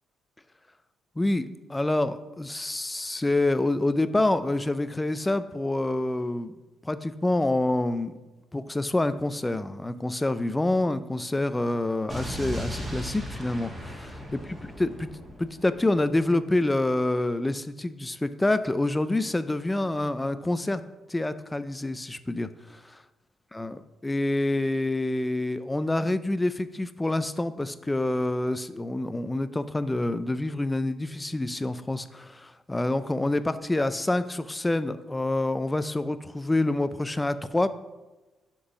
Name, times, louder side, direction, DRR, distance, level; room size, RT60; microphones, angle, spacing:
voice 1, 1.2-6.6 6.8-8.2 8.5-15.1 15.4-20.8 21.1-23.0 23.5-37.7, left 2 dB, 15° left, 13 dB, 0.4 m, -27 dB
Explosion, 12.1-16.1, equal, 20° right, 1.7 m, -37 dB
6.4 x 3.8 x 5.9 m, 1.1 s
cardioid pair, 90°, 0 cm